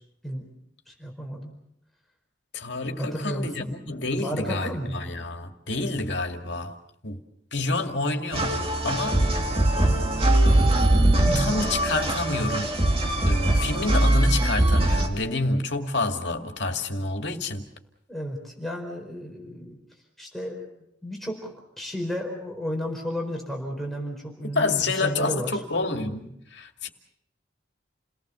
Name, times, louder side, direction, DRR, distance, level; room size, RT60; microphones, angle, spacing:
voice 1, 0.9-1.5 3.0-3.7 4.2-5.0 11.3-11.5 18.1-19.8 20.2-20.7 21.0-25.6, equal, ahead, 4.6 m, -33 dB
voice 2, 2.5-6.8 7.0-7.2 7.5-9.2 11.1-12.8 13.2-17.7 24.5-26.9, left 2 dB, 70° left, 2.3 m, -28 dB
sound 1, 8.3-15.1, right 1 dB, 30° right, 2.6 m, -21 dB
29.5 x 19.0 x 7.0 m
head